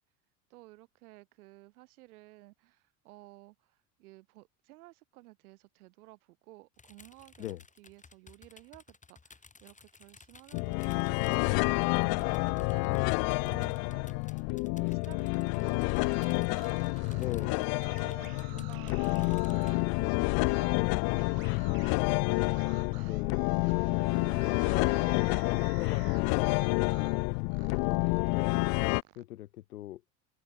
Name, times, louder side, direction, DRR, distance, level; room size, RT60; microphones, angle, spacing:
voice 1, 0.5-17.6 18.0-22.0, right 20 dB, 75° right, 7.8 m, -55 dB
sound 1, 6.8-19.7, left 4 dB, 15° left, 3.3 m, -58 dB
sound 2, 10.5-29.0, left 36 dB, 55° left, 0.5 m, -29 dB
sound 3, 15.9-19.9 20.5-20.7 21.1-27.2 27.5-29.2, right 17 dB, 55° right, 3.2 m, -53 dB
voice 2, 17.2-17.7 22.7-23.8 24.2-28.6 29.2-30.0, left 14 dB, 85° left, 4.3 m, -40 dB
hypercardioid pair, 95°, 44 cm